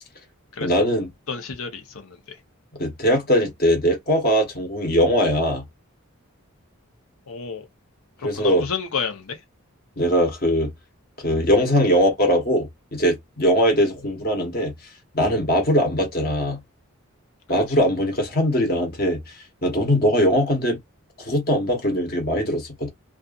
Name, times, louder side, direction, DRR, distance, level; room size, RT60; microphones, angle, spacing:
voice 1, 0.6-1.1 2.8-5.6 8.2-8.6 10.0-10.7 11.2-14.7 15.1-16.6 17.5-19.2 19.6-20.8 21.2-22.9, equal, 45° left, 1.1 m, -21 dB
voice 2, 1.3-2.4 7.3-7.6 8.3-9.4 17.5-17.8, left 5 dB, 85° left, 0.8 m, -31 dB
2.6 x 2.4 x 2.4 m
head